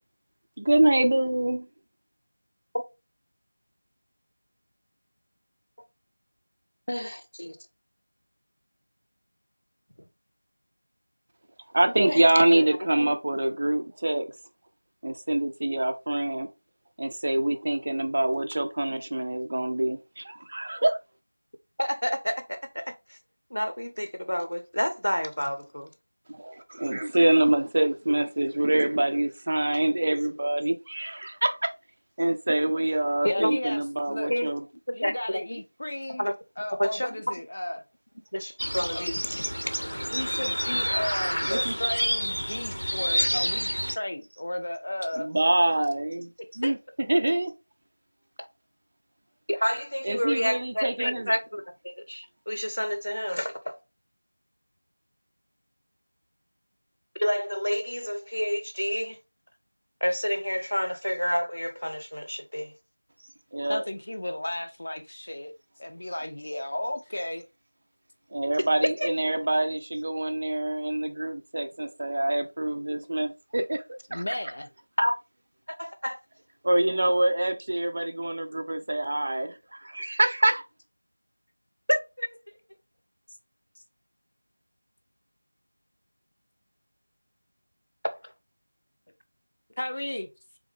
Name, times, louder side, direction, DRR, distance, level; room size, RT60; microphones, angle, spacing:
voice 1, 0.6-1.6 11.7-14.3 15.0-16.5 17.0-21.0 26.3-31.7 32.2-34.6 41.4-41.7 45.2-47.5 50.0-51.3 63.5-63.8 68.3-73.8 74.1-74.2 76.6-80.6, right 1 dB, 25° right, 0.3 m, -25 dB
voice 2, 6.9-7.6 11.9-12.2 12.5-12.7 13.0-13.1 21.8-23.2 23.5-25.9 33.2-33.5 34.3-34.5 34.9-35.6 36.1-36.3 36.8-37.2 38.3-39.4 48.4-48.5 49.5-53.7 57.1-59.2 60.0-62.7 69.0-69.1 75.0-75.2 75.7-76.2 81.9-82.4 88.0-88.3, equal, 70° left, 0.8 m, -29 dB
voice 3, 33.2-34.3 34.9-36.3 36.6-37.8 38.9-39.1 40.1-45.3 46.6-46.7 63.7-65.5 65.8-67.4 74.1-74.7 89.8-90.3, left 1 dB, 35° left, 0.5 m, -34 dB
sound 1, 38.6-44.0, equal, 85° right, 0.6 m, -28 dB
3.6 x 3.4 x 3.3 m
figure-of-eight pair, 175°, 0 cm